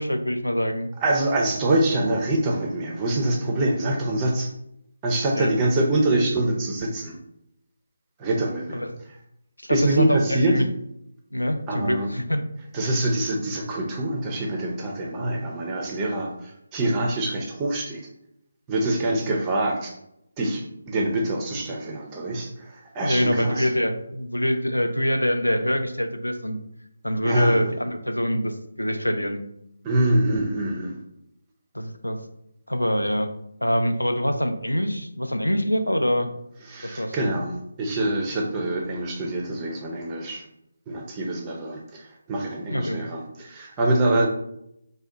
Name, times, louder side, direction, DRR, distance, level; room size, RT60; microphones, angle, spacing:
voice 1, 0.0-0.9 5.3-5.5 8.7-8.9 9.6-10.7 11.3-12.4 23.0-26.6 27.0-29.4 31.7-32.2 32.7-33.3 33.6-36.3 36.8-37.3 42.7-43.0, equal, 80° left, 7 dB, 0.4 m, -24 dB
voice 2, 1.0-4.5 5.0-7.2 8.2-8.8 9.7-10.6 11.7-12.1 12.7-18.1 18.7-19.9 20.4-23.7 27.2-27.7 29.8-31.0 36.6-40.4 40.9-44.3, right 1 dB, 15° right, 0 dB, 0.4 m, -25 dB
2.7 x 2.1 x 3.4 m, 0.78 s
figure-of-eight pair, 150°, 0 cm